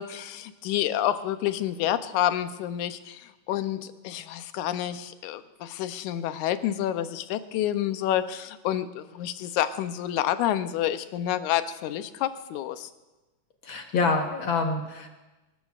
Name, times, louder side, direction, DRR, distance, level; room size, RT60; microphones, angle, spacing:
voice 1, 0.0-12.9, left 12 dB, 90° left, 11 dB, 2.1 m, -29 dB
voice 2, 13.6-15.1, left 4 dB, 55° left, 3 dB, 1.6 m, -26 dB
26.0 x 13.5 x 2.4 m, 1.1 s
omnidirectional pair, 3.3 m